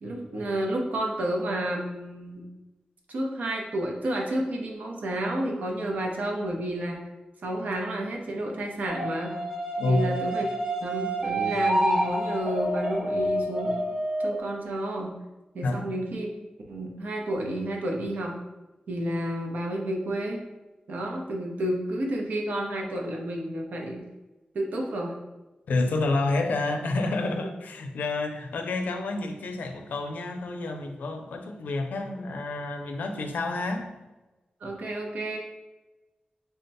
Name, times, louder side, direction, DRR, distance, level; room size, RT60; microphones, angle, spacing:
voice 1, 0.0-2.4 3.1-7.0 7.4-9.3 9.9-10.5 10.8-13.8 14.2-15.1 15.5-16.3 16.7-18.3 18.9-20.4 20.9-24.0 24.5-25.1 34.6-35.4, right 1 dB, 70° right, 0 dB, 0.6 m, -30 dB
sound 1, 8.9-14.4, right 1 dB, 25° right, 0.5 m, -28 dB
voice 2, 9.8-10.2 15.6-15.7 25.7-33.9, left 2 dB, 85° left, 4 dB, 0.4 m, -29 dB
3.5 x 2.2 x 4.0 m, 1.1 s
wide cardioid pair, 165°, 3 cm